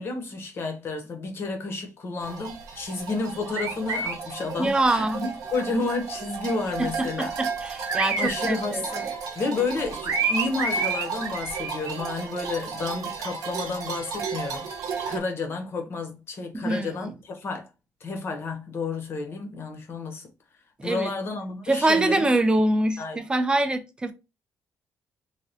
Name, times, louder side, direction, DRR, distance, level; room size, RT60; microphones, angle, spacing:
voice 1, 0.0-7.3 8.2-9.1 9.3-14.7 15.1-17.7 18.0-20.3 20.8-22.3 23.0-23.2, left 3 dB, 40° left, 0.7 m, -31 dB
sound 1, 2.2-15.2, right 5 dB, 70° right, 0.6 m, -31 dB
voice 2, 4.6-5.2 6.8-9.1 14.9-15.1 16.5-17.1 20.8-21.1 21.7-24.1, right 2 dB, 15° right, 0.3 m, -25 dB
3.3 x 2.2 x 2.6 m
cardioid pair, 170°, 6 cm